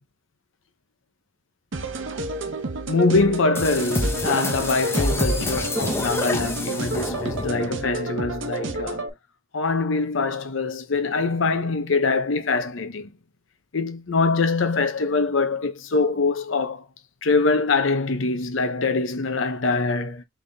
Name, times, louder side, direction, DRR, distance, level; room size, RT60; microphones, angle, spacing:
sound 1, 1.7-9.1, right 2 dB, 65° right, 0.8 m, -31 dB
voice 1, 2.9-9.1 9.5-13.1 13.7-16.8 17.2-20.2, left 3 dB, 70° left, 0.8 m, -23 dB
sound 2, 3.5-7.7, left 1 dB, 10° left, 0.9 m, -27 dB
3.9 x 3.5 x 3.4 m
head